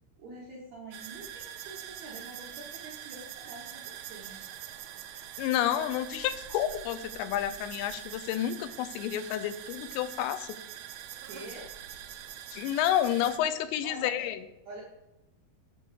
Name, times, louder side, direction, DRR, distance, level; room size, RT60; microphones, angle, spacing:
voice 1, 0.2-4.4 11.2-11.8 13.8-14.3 14.7-14.8, right 2 dB, 65° right, -3 dB, 1.8 m, -46 dB
sound 1, 0.9-13.4, right 11 dB, 85° right, 2.2 m, -44 dB
voice 2, 5.4-10.6 12.5-14.4, left 11 dB, 85° left, 12 dB, 2.8 m, -30 dB
8.6 x 4.6 x 6.6 m, 0.95 s
omnidirectional pair, 5.1 m